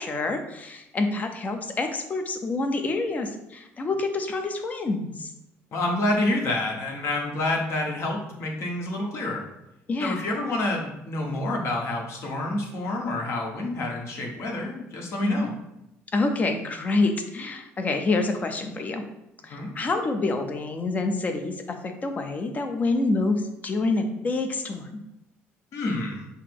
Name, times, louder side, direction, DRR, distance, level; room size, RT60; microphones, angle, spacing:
voice 1, 0.0-5.3 9.9-10.3 15.2-15.5 16.1-19.0 19.4-24.9, left 3 dB, 30° left, 5 dB, 0.6 m, -27 dB
voice 2, 5.7-9.4 10.0-15.5 19.4-19.7 25.7-26.3, left 2 dB, 55° left, 0 dB, 1.1 m, -28 dB
5.6 x 2.0 x 4.6 m, 0.89 s
cardioid pair, 115°, 5 cm